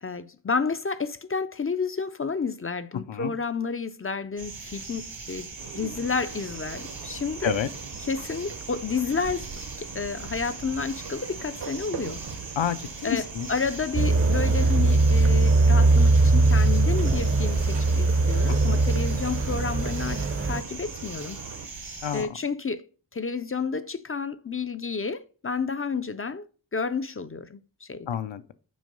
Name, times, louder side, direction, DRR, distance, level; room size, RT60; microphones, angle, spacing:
voice 1, 0.0-7.6 8.1-12.2 13.0-21.4 22.1-22.9 23.1-26.5 26.7-28.1, left 5 dB, 30° left, 0.4 m, -31 dB
sound 1, 4.4-22.3, right 4 dB, 80° right, 1.6 m, -40 dB
sound 2, 5.6-21.7, right 5 dB, 60° right, 0.8 m, -42 dB
voice 2, 12.6-13.5 18.5-18.8 22.0-22.3 28.1-28.5, left 9 dB, 75° left, 0.6 m, -29 dB
sound 3, 13.9-20.6, right 2 dB, 30° right, 0.6 m, -21 dB
6.3 x 4.5 x 5.2 m
wide cardioid pair, 90°, 45 cm